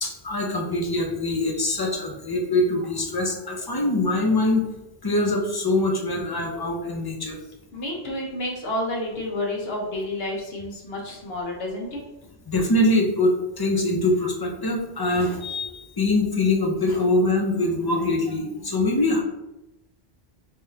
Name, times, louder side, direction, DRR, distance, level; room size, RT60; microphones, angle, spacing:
voice 1, 0.0-4.7 5.0-7.4 12.5-19.2, left 2 dB, 30° left, 1 dB, 0.4 m, -23 dB
voice 2, 7.7-12.0, left 1 dB, 75° left, -2 dB, 1.1 m, -30 dB
3.4 x 3.4 x 2.7 m, 0.96 s
omnidirectional pair, 1.1 m